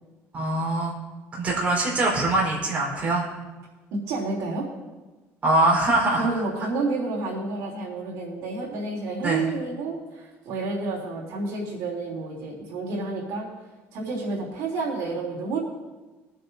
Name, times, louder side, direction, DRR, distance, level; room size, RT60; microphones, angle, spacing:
voice 1, 0.3-0.9 1.3-3.2 5.4-6.4 9.2-9.4, right 2 dB, 25° right, -4 dB, 4.5 m, -23 dB
voice 2, 3.9-4.7 6.1-13.5 13.9-15.6, right 3 dB, 75° right, -3 dB, 3.4 m, -30 dB
22.0 x 9.9 x 2.8 m, 1.2 s
cardioid pair, 165°, 5 cm